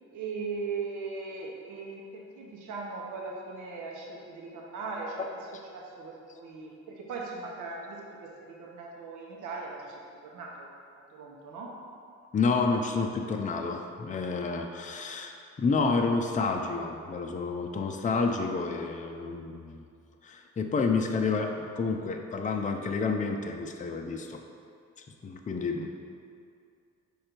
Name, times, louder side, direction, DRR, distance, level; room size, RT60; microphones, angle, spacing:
voice 1, 0.1-10.7 11.1-11.7, right 4 dB, 80° right, -2 dB, 1.0 m, -39 dB
voice 2, 12.3-19.8 20.2-24.4 25.0-25.9, left 4 dB, 25° left, 3 dB, 0.5 m, -29 dB
5.4 x 5.1 x 4.5 m, 2.4 s
cardioid pair, 90°, 30 cm